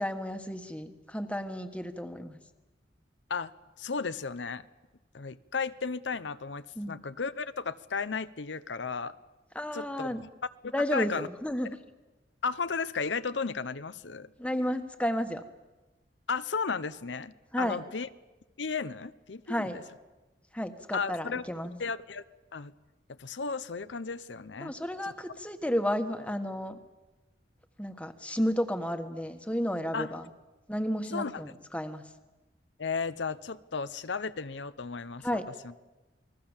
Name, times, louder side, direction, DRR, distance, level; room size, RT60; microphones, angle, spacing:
voice 1, 0.0-2.4 6.7-7.0 9.5-10.2 10.7-11.7 14.4-15.4 17.5-17.8 19.5-19.8 20.5-21.8 24.6-26.8 27.8-30.3 30.7-32.0 35.2-35.5, equal, 5° left, 7 dB, 1.5 m, -32 dB
voice 2, 3.8-4.6 5.1-9.2 9.7-10.1 10.6-11.3 12.4-14.3 16.3-18.1 18.6-19.7 20.9-21.4 21.8-22.2 22.5-22.7 23.1-24.7 25.0-25.1 29.9-30.2 31.1-31.4 32.8-35.3 35.6-35.7, left 5 dB, 90° left, 13 dB, 0.8 m, -34 dB
28.5 x 21.0 x 7.3 m, 1.1 s
head